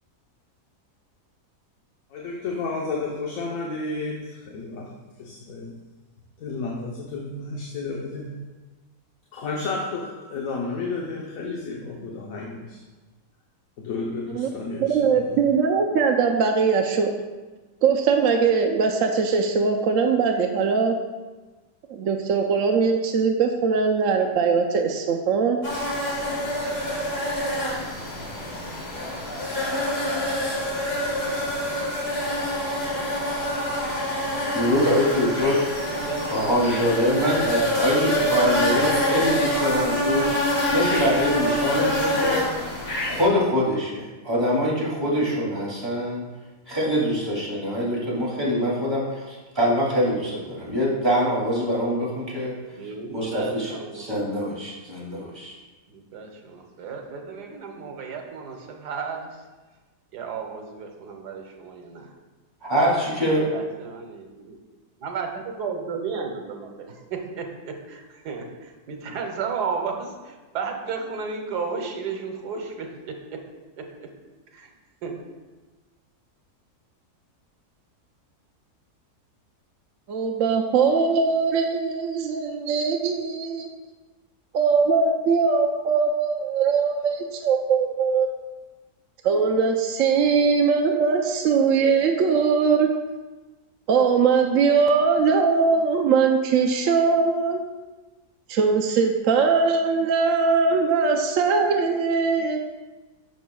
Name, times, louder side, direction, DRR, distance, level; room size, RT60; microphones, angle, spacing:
voice 1, 2.1-4.9 5.2-5.7 6.4-8.3 9.3-12.8 13.8-15.4, left 3 dB, 60° left, -2 dB, 1.2 m, -32 dB
voice 2, 14.8-17.1 17.8-21.0 21.9-25.6 80.1-83.7 84.5-88.3 89.2-92.9 93.9-97.6 98.5-102.6, right 5 dB, 65° right, 3 dB, 0.9 m, -21 dB
sound 1, 25.6-43.2, equal, 90° left, 2.8 m, -26 dB
voice 3, 34.1-35.6 36.3-42.5 43.0-46.2 46.7-52.8 53.1-55.6 62.6-63.4, equal, 15° right, -7 dB, 2.5 m, -24 dB
voice 4, 35.9-36.5 52.8-54.0 55.9-59.4 60.1-62.1 63.3-64.6 65.0-73.1 73.8-74.1 74.5-74.7 75.0-75.2, right 5 dB, 85° right, 3 dB, 1.5 m, -33 dB
10.5 x 6.8 x 2.3 m, 1.2 s
omnidirectional pair, 1.7 m